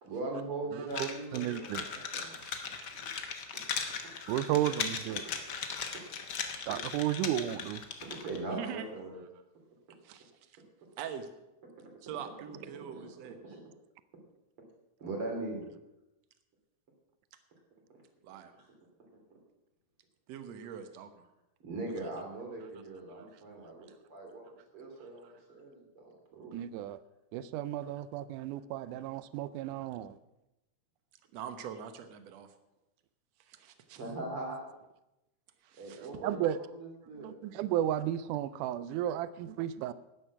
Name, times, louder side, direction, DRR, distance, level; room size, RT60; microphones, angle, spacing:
voice 1, 0.0-3.1 8.2-9.2 13.0-13.1 13.4-13.6 15.0-15.7 21.6-26.6 33.9-34.6 35.8-37.3, right 2 dB, 45° right, 0 dB, 3.6 m, -40 dB
sound 1, 0.9-8.4, left 6 dB, 75° left, 0.9 m, -38 dB
voice 2, 0.9-1.9 4.3-5.2 6.7-7.8 26.5-27.0 27.3-30.2 36.2-36.6 37.2-39.9, right 12 dB, 85° right, 16 dB, 2.1 m, -33 dB
voice 3, 2.4-2.9 4.6-4.7 7.6-7.7 8.5-8.8 10.0-10.6 11.0-11.3 12.0-13.4 18.2-18.5 20.3-21.2 22.6-22.7 23.1-23.4 23.9-24.0 25.0-25.4 29.9-30.0 31.3-32.5 33.4-34.0 35.6-36.4 38.9-39.0, right 8 dB, 65° right, 8 dB, 2.1 m, -44 dB
12.5 x 9.8 x 6.0 m, 0.94 s
omnidirectional pair, 3.6 m